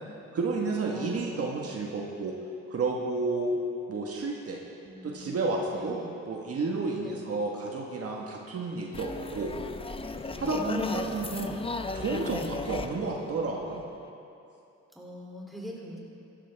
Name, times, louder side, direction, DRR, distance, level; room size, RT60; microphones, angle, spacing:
voice 1, 0.3-2.3 2.7-3.5 3.9-4.6 5.0-6.0 6.3-9.5 10.3-11.6 11.9-13.8, right 3 dB, 50° right, -1 dB, 1.6 m, -31 dB
voice 2, 0.9-1.7 4.8-5.4 5.7-6.1 7.0-7.3 10.5-11.3 14.9-16.0, right 1 dB, ahead, -3 dB, 3.1 m, -42 dB
sound 1, 8.9-14.1, left 3 dB, 20° left, 0.6 m, -36 dB
15.5 x 13.0 x 3.5 m, 2.7 s
cardioid pair, 90°, 30 cm